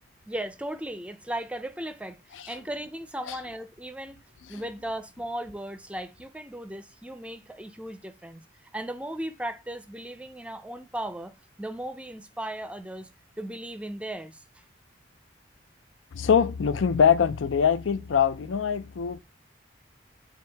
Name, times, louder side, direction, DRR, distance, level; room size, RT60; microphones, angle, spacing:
voice 1, 0.3-2.2 2.5-4.2 4.5-8.4 8.7-11.3 11.6-13.1 13.4-14.4, right 1 dB, 5° right, 0.4 m, -36 dB
voice 2, 16.1-19.2, left 7 dB, 85° left, 0.4 m, -23 dB
8.7 x 3.5 x 3.4 m
head